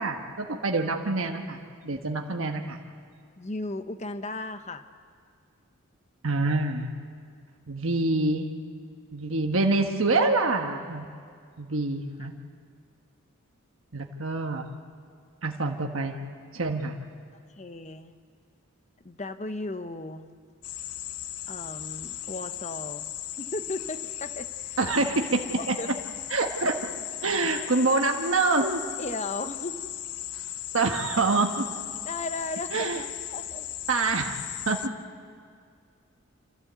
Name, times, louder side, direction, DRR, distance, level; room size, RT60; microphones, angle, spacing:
voice 1, 0.0-2.8 6.2-6.9 7.7-8.5 9.1-11.0 11.6-12.3 13.9-14.6 15.4-16.1 16.5-16.9 24.8-25.5 26.3-26.9 27.2-28.8 30.7-31.7 32.7-33.0 33.9-34.8, right 3 dB, 65° right, 3 dB, 1.3 m, -26 dB
voice 2, 3.4-4.9 12.2-12.3 17.6-18.1 19.0-20.3 21.5-23.1 23.4-24.8 25.6-25.9 29.0-29.8 32.0-33.1 33.3-33.7, left 2 dB, 30° left, 10 dB, 0.9 m, -36 dB
sound 1, 20.6-34.9, left 12 dB, 85° left, 0.7 m, -37 dB
27.0 x 15.5 x 8.2 m, 2.1 s
head